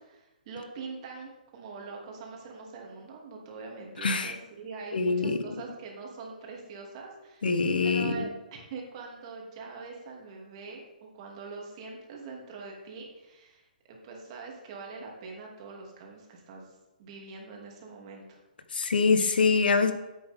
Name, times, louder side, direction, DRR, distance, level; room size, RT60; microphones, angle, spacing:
voice 1, 0.0-7.6 7.8-16.7 17.0-18.4, right 4 dB, 40° right, -1 dB, 2.6 m, -43 dB
voice 2, 4.0-4.4 4.9-5.4 7.4-8.3 18.7-19.9, left 4 dB, 80° left, 9 dB, 1.1 m, -24 dB
11.0 x 8.6 x 3.6 m, 1.0 s
hypercardioid pair, 145°, 5 cm